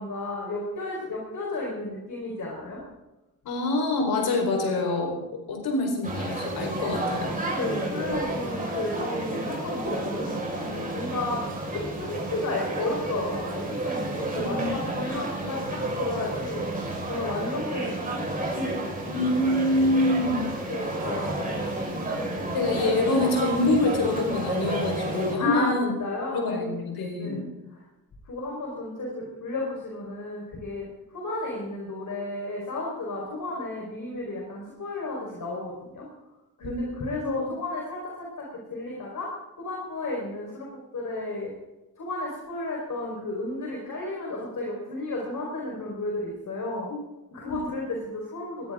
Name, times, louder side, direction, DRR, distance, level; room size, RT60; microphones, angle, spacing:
voice 1, 0.0-2.8 7.5-11.4 11.7-16.7 17.1-18.9 20.7-22.1 25.4-26.8 27.2-27.4 27.7-27.8 28.2-36.1 36.6-38.4 38.7-39.3 39.6-40.7 40.9-41.5 42.0-46.9 47.3-48.7, left 2 dB, 55° left, -2 dB, 4.8 m, -33 dB
voice 2, 3.4-5.2 5.5-7.4 14.3-14.9 15.3-15.5 19.1-20.5 22.5-25.9 26.3-27.4 36.6-37.3 47.4-47.6, left 2 dB, 85° left, 2 dB, 4.6 m, -26 dB
sound 1, 6.0-25.4, right 2 dB, 25° right, 5.4 m, -31 dB
20.5 x 14.5 x 3.8 m, 1.0 s
cardioid pair, 100°, 36 cm